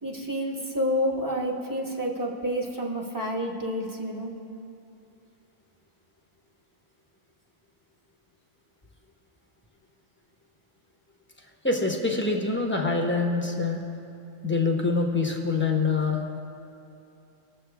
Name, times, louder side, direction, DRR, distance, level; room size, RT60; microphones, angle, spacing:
voice 1, 0.0-4.3, equal, 15° right, -1 dB, 1.1 m, -29 dB
voice 2, 11.6-13.8 14.4-16.4, left 3 dB, 10° left, 0 dB, 1.0 m, -25 dB
20.5 x 7.4 x 3.5 m, 2.7 s
omnidirectional pair, 1.3 m